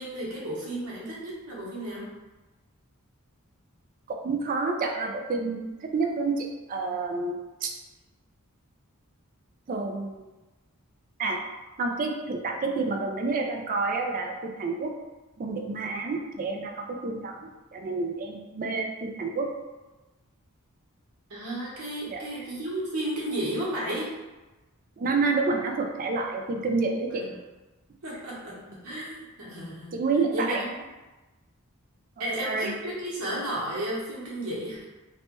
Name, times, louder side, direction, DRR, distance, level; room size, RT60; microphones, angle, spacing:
voice 1, 0.0-2.1 21.3-24.1 27.1-27.4 28.0-30.0 30.3-30.6 32.2-34.8, right 1 dB, 80° right, -6 dB, 1.0 m, -33 dB
voice 2, 4.1-7.7 9.7-10.3 11.2-11.4 11.8-14.9 15.4-19.5 22.1-22.2 25.0-27.3 29.9-30.6 32.4-32.8, right 3 dB, 40° right, 2 dB, 0.3 m, -29 dB
3.1 x 2.1 x 2.9 m, 1.1 s
head